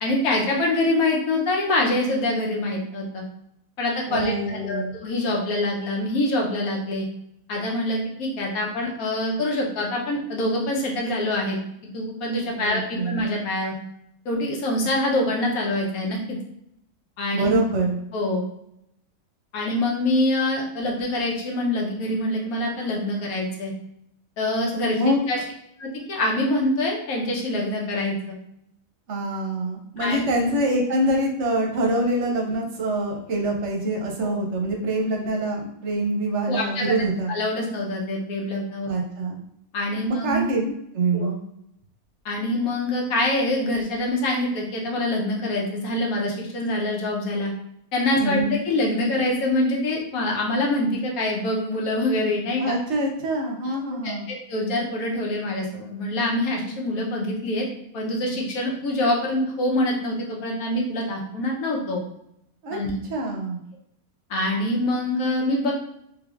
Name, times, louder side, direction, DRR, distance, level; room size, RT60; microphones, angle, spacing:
voice 1, 0.0-3.2 3.8-7.1 7.5-11.6 11.9-13.7 14.2-16.4 17.2-17.6 18.1-18.4 19.5-23.7 24.4-25.4 25.8-28.3 30.0-30.2 34.2-34.4 36.5-36.9 37.3-38.9 39.7-40.5 41.1-41.3 42.2-47.5 47.9-52.7 53.6-53.8 54.0-57.6 57.9-62.0 62.7-62.9 64.3-65.7, left 1 dB, 90° left, -1 dB, 1.2 m, -25 dB
voice 2, 4.1-5.0 12.6-13.2 17.3-18.0 24.9-25.2 29.1-37.3 38.9-39.4 40.0-41.4 48.2-48.6 52.6-54.3 62.6-62.8 63.1-63.6, right 1 dB, 65° right, 0 dB, 0.8 m, -25 dB
3.4 x 3.0 x 2.4 m, 0.77 s
omnidirectional pair, 1.5 m